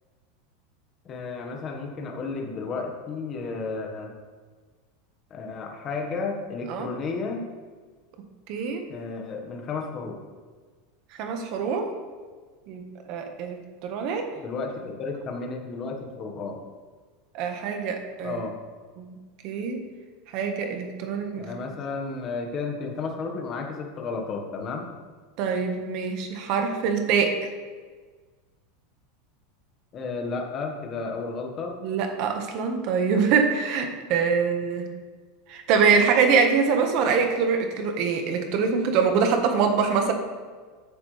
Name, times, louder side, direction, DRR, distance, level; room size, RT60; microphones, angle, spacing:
voice 1, 1.0-4.1 5.3-7.5 8.9-10.2 14.4-16.6 18.2-18.6 21.4-24.9 29.9-31.8, left 4 dB, 25° left, 2 dB, 1.5 m, -32 dB
voice 2, 8.5-8.8 11.2-11.9 12.7-14.3 17.3-18.4 19.0-19.1 19.4-19.8 20.3-21.5 25.4-27.5 31.8-34.9 35.5-40.1, right 5 dB, 40° right, 5 dB, 1.4 m, -24 dB
14.5 x 10.0 x 3.4 m, 1.5 s
supercardioid pair, 170°, 0 cm